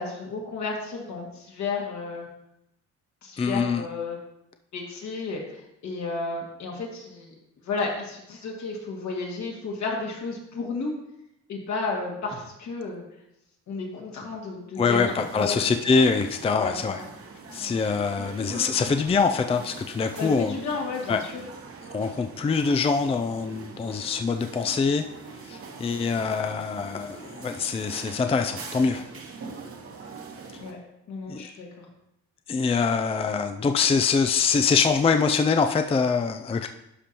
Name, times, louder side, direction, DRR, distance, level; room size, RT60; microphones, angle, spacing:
voice 1, 0.0-2.3 3.2-4.2 4.7-7.3 7.6-10.9 11.5-13.0 13.7-15.6 16.6-16.7 20.1-21.4 30.6-30.8 31.1-31.9, left 4 dB, 70° left, -2 dB, 2.1 m, -32 dB
voice 2, 3.4-3.8 14.8-17.0 17.5-20.6 21.1-21.3 21.9-25.0 25.4-29.0 31.3-31.5 32.5-36.7, left 5 dB, 20° left, 7 dB, 0.4 m, -24 dB
sound 1, 14.9-30.7, right 4 dB, 50° right, 1.3 m, -42 dB
11.5 x 5.2 x 2.9 m, 0.83 s
cardioid pair, 90°, 30 cm